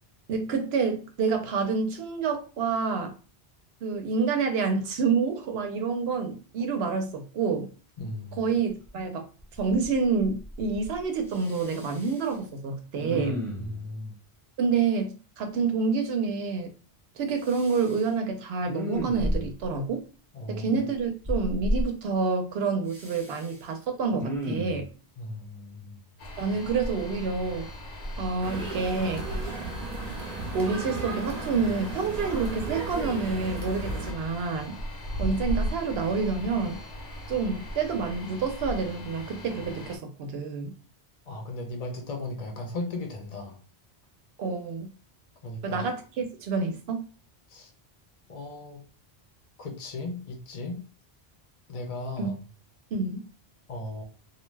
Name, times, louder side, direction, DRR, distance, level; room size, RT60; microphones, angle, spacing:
voice 1, 0.3-3.1 3.8-7.7 8.4-9.3 9.6-13.4 14.6-16.7 17.2-20.0 20.5-24.9 26.4-27.7 28.2-29.3 30.5-34.8 35.2-36.8 37.3-40.7 44.4-44.9 45.6-47.1 52.2-52.3 52.9-53.2, right 5 dB, 70° right, 0.9 m, -28 dB
voice 2, 8.0-8.5 13.0-14.2 20.3-20.8 25.2-26.0 41.3-43.6 45.4-45.8 47.5-47.7 48.3-48.8 49.6-50.8 51.7-52.4 53.7-54.0, left 2 dB, 45° left, 0.6 m, -36 dB
Respiratory sounds, 8.9-9.0 9.4-9.9 10.2-10.9 11.3-12.3 13.0-13.8 17.4-18.0 18.6-19.7 21.2-21.8 22.9-23.6 24.1-24.9 26.7-27.6 28.0-28.2, equal, 5° left, 0.6 m, -33 dB
sound 1, 26.2-40.0, equal, 80° left, 1.0 m, -37 dB
sound 2, 28.4-34.1, right 3 dB, 40° right, 0.8 m, -35 dB
2.5 x 2.2 x 3.2 m
omnidirectional pair, 1.1 m